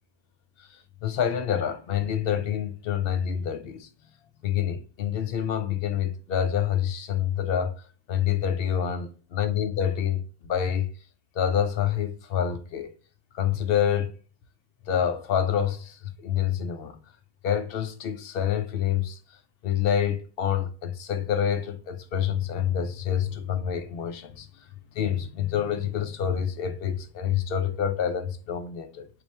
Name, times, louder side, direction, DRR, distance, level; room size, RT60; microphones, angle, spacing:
voice 1, 1.0-3.9 4.4-7.7 8.1-10.9 11.4-12.9 13.3-14.1 14.9-16.0 16.2-17.0 17.4-19.2 19.6-24.5 25.0-29.1, left 9 dB, 65° left, 0.7 m, -27 dB
3.1 x 2.6 x 4.1 m
omnidirectional pair, 1.2 m